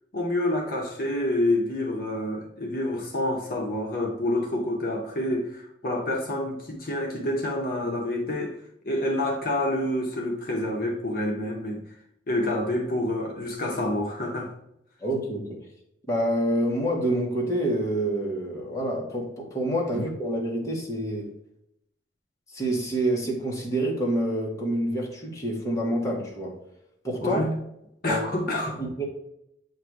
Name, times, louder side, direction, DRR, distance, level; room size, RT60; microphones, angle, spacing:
voice 1, 0.1-8.6 8.9-11.8 12.3-14.5 27.2-27.5 28.0-28.8, left 1 dB, 50° left, 0.9 m, -28 dB
voice 2, 15.0-15.6 16.1-21.3 22.5-26.6 27.0-27.4 28.1-28.2 28.8-29.1, right 1 dB, 15° left, 1.2 m, -27 dB
7.7 x 2.6 x 4.6 m
head